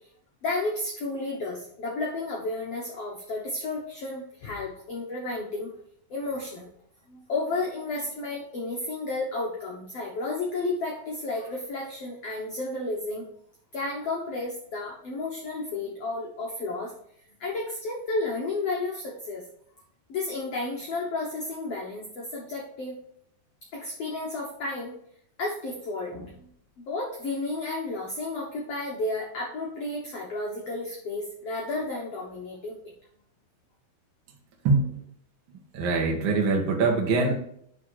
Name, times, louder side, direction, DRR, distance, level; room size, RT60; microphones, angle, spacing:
voice 1, 0.4-5.7 6.1-6.7 7.1-13.2 13.7-16.9 17.4-19.4 20.1-23.0 23.7-24.9 25.4-26.5 26.9-32.8, left 2 dB, 75° left, -2 dB, 1.4 m, -32 dB
voice 2, 34.6-35.0 35.5-37.3, right 3 dB, 70° right, 0 dB, 1.1 m, -24 dB
10.5 x 3.7 x 4.7 m, 0.69 s
omnidirectional pair, 4.5 m